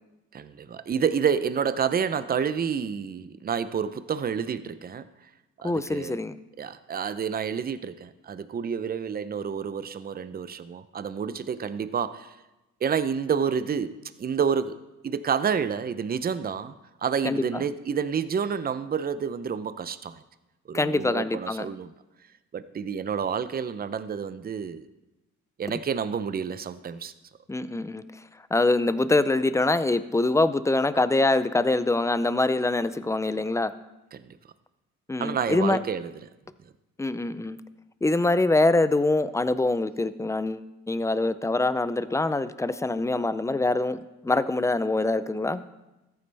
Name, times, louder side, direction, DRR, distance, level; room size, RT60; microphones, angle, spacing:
voice 1, 0.3-5.1 5.6-6.2 6.6-12.4 12.8-14.8 15.0-16.8 17.0-20.2 20.7-21.9 22.5-24.9 25.6-27.1 34.1-34.3 35.2-36.3, right 7 dB, 30° right, 13 dB, 0.6 m, -29 dB
voice 2, 5.6-6.4 17.2-17.4 20.7-21.7 27.5-28.0 28.5-33.7 35.1-35.8 37.0-37.6 38.0-45.6, left 2 dB, 10° left, 14 dB, 0.5 m, -24 dB
14.0 x 9.4 x 3.4 m, 1.0 s
cardioid pair, 90°, 30 cm